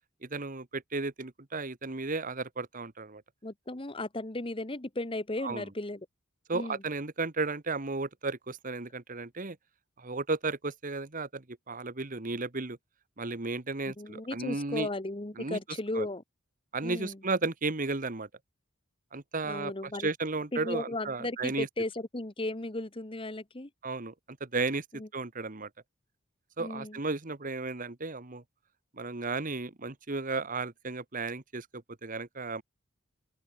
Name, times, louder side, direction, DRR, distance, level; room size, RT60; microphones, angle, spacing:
voice 1, 0.2-3.2 5.4-5.7 6.5-9.6 10.0-12.8 13.2-14.9 15.4-15.6 15.9-16.1 16.7-18.3 19.1-19.7 20.0-21.7 23.8-24.1 24.4-24.8 25.1-25.7 26.6-28.4 28.9-32.6, right 3 dB, 40° right, 1.4 m, -34 dB
voice 2, 3.4-6.1 6.5-6.8 13.9-16.2 16.8-17.2 19.4-20.1 20.5-23.7 24.9-25.1 26.6-27.0, left 2 dB, 25° left, 1.3 m, -35 dB
open air
head